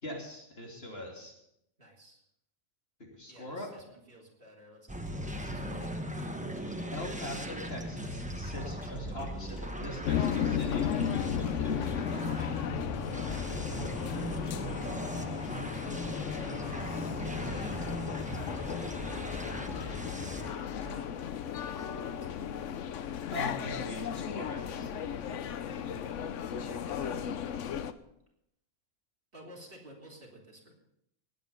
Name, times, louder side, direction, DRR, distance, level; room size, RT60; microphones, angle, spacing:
voice 1, 0.0-1.3 3.0-3.7 6.9-11.8 23.3-24.9, left 1 dB, 45° left, -1 dB, 3.1 m, -42 dB
voice 2, 1.8-2.2 3.3-6.4 13.7-14.6 16.5-21.2 21.6-22.9 25.6-25.9 26.6-27.8 29.3-30.7, right 1 dB, 45° right, -2 dB, 3.3 m, -53 dB
sound 1, 4.9-20.5, equal, 5° right, 0.9 m, -38 dB
sound 2, 5.0-21.9, left 3 dB, 90° left, 2.1 m, -48 dB
sound 3, 10.0-27.9, left 8 dB, 70° left, 1.0 m, -35 dB
19.0 x 8.9 x 5.4 m, 0.79 s
omnidirectional pair, 1.4 m